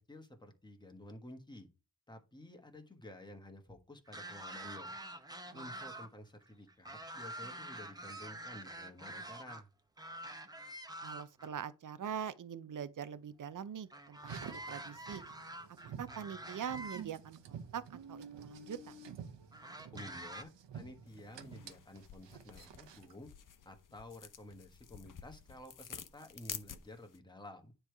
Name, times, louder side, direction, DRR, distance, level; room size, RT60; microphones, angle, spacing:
voice 1, 0.0-1.7 2.1-5.0 5.5-9.7 19.9-23.3 23.6-27.7, left 1 dB, 10° left, 1.3 m, -52 dB
sound 1, 4.1-6.1 6.4-9.6 10.0-11.5 13.9-17.0 18.0-18.1 19.5-20.4, right 1 dB, 10° right, 0.8 m, -47 dB
voice 2, 11.0-15.2 16.0-18.9, right 8 dB, 45° right, 0.7 m, -43 dB
Car, 14.2-23.2, right 6 dB, 75° right, 1.1 m, -50 dB
sound 2, 21.1-27.2, left 8 dB, 45° left, 0.8 m, -51 dB
9.8 x 3.4 x 4.6 m
wide cardioid pair, 110°, 43 cm